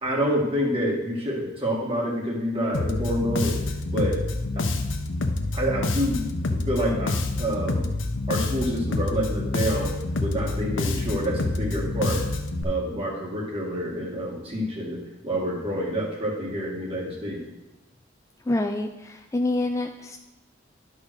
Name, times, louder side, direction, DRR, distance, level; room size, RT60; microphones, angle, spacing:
voice 1, 0.0-3.6 3.9-4.2 4.6-4.7 5.5-6.3 6.6-7.9 8.3-12.2 12.6-17.4, equal, 30° right, -3 dB, 1.9 m, -27 dB
Bass guitar, 2.7-12.6, left 2 dB, 80° left, 0.8 m, -27 dB
voice 2, 18.5-20.2, left 2 dB, 15° left, 4 dB, 0.4 m, -27 dB
10.5 x 3.7 x 6.4 m, 0.99 s
head